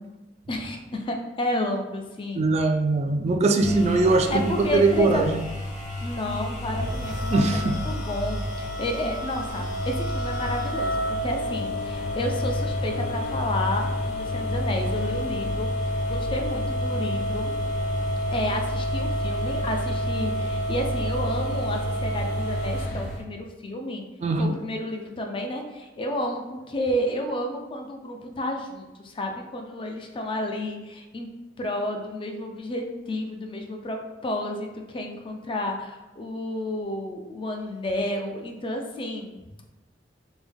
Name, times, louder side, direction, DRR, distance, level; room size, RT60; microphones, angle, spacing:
voice 1, 0.5-2.4 4.3-5.3 6.0-15.7 16.1-17.5 18.3-24.0 24.4-31.3 31.6-39.7, left 1 dB, 30° left, 3 dB, 0.4 m, -31 dB
voice 2, 2.4-5.4 7.3-7.8 24.2-24.5, right 3 dB, 35° right, 5 dB, 0.3 m, -21 dB
sound 1, 3.6-23.2, equal, 45° left, 0.8 m, -28 dB
3.5 x 2.2 x 3.4 m, 1.1 s
head